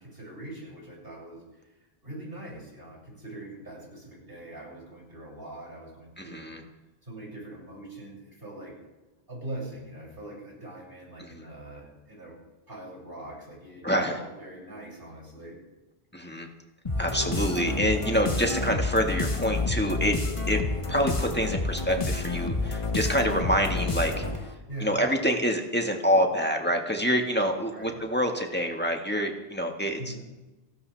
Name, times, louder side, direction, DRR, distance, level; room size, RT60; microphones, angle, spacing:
voice 1, 0.0-1.6 2.0-6.8 7.0-8.7 9.3-12.4 12.7-15.6 24.7-25.0 27.7-28.0 30.0-30.2, right 1 dB, 65° right, -4 dB, 7.2 m, -42 dB
voice 2, 6.2-6.6 11.2-11.5 13.8-14.2 16.1-16.5 17.0-20.2 20.5-20.6 20.9-24.3 24.8-30.1, equal, 10° left, 2 dB, 1.7 m, -26 dB
sound 1, 16.9-24.5, left 3 dB, 30° left, 1.3 m, -29 dB
30.0 x 12.5 x 3.5 m, 1.1 s
omnidirectional pair, 1.1 m